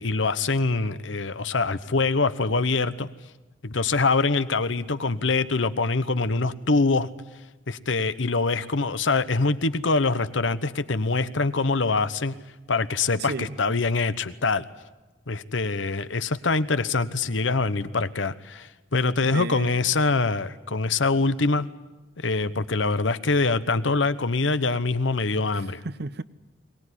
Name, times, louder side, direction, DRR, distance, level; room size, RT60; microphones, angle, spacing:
voice 1, 0.0-3.1 3.6-7.1 7.7-12.3 12.7-14.6 15.3-21.7 22.2-25.8, left 3 dB, 75° left, 13 dB, 1.0 m, -24 dB
voice 2, 13.2-13.6 19.2-19.7 25.8-26.2, right 3 dB, 60° right, 16 dB, 0.8 m, -33 dB
22.5 x 19.0 x 9.9 m, 1.1 s
head